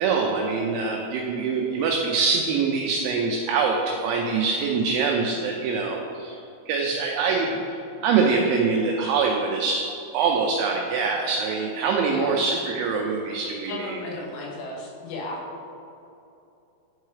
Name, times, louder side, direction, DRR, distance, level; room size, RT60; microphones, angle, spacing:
voice 1, 0.0-6.4 6.7-7.6 8.0-9.9 10.1-14.0, right 5 dB, 90° right, 0 dB, 2.6 m, -24 dB
voice 2, 12.1-12.4 13.6-15.4, left 3 dB, 80° left, -3 dB, 3.8 m, -35 dB
11.0 x 4.6 x 3.2 m, 2.8 s
omnidirectional pair, 5.9 m